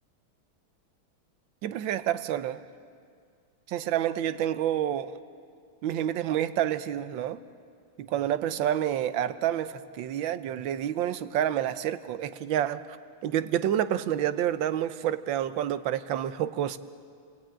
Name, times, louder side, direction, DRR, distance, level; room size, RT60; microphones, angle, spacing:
voice 1, 1.6-2.6 3.7-5.2 5.8-7.4 8.0-12.8 13.2-16.8, right 11 dB, 70° right, 12 dB, 1.5 m, -28 dB
29.5 x 19.0 x 8.8 m, 2.2 s
omnidirectional pair, 2.4 m